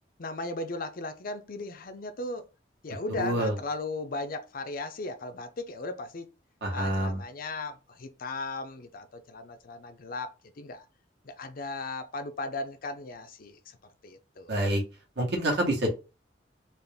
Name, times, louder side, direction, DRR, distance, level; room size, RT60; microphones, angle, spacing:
voice 1, 0.2-2.4 2.8-6.3 6.7-10.8 11.2-13.8 14.0-14.6, left 2 dB, 50° left, 0.6 m, -37 dB
voice 2, 3.2-3.5 6.6-7.2 14.5-14.8 15.2-15.9, right 1 dB, 65° right, 1.7 m, -27 dB
4.0 x 2.4 x 3.5 m
head